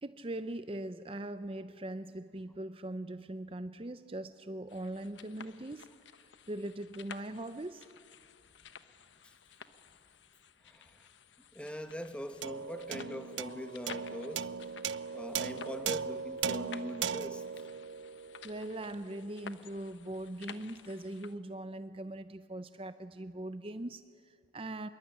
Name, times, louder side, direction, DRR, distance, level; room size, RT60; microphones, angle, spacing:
voice 1, 0.0-5.9 6.5-7.9 18.4-24.9, right 1 dB, 30° right, 11 dB, 0.6 m, -41 dB
sound 1, 4.7-21.4, left 6 dB, 80° left, 1.1 m, -53 dB
voice 2, 10.6-11.1 11.5-14.5 15.1-17.7, equal, 5° left, 8 dB, 1.1 m, -43 dB
sound 2, 12.4-19.0, right 6 dB, 80° right, 0.6 m, -38 dB
26.0 x 22.0 x 9.9 m, 2.3 s
head